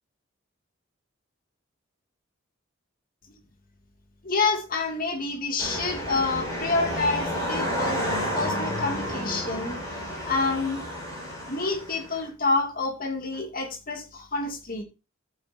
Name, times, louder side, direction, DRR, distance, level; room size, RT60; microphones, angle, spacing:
voice 1, 4.2-9.8 10.2-10.8 11.5-14.8, left 3 dB, 45° left, 4 dB, 2.4 m, -28 dB
sound 1, 5.6-12.3, equal, 15° left, 5.6 m, -31 dB
14.0 x 7.9 x 2.8 m, 0.29 s
head